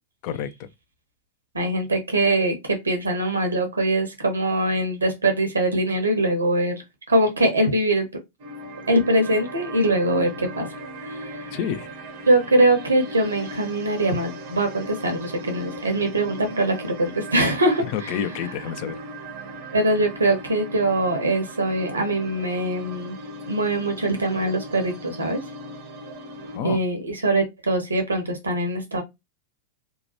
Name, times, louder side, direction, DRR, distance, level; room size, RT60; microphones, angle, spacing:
voice 1, 0.2-0.7 11.5-11.9 17.8-19.0 26.5-26.8, left 8 dB, 45° left, 0.4 m, -29 dB
voice 2, 1.5-6.8 7.1-8.1 8.9-10.7 11.0-11.2 12.3-18.1 19.7-23.2 23.5-25.4 26.6-29.0, right 1 dB, 75° right, 0.8 m, -22 dB
sound 1, 8.4-26.6, right 1 dB, 45° right, 0.6 m, -38 dB
2.8 x 2.2 x 2.8 m
figure-of-eight pair, 90°, 0 cm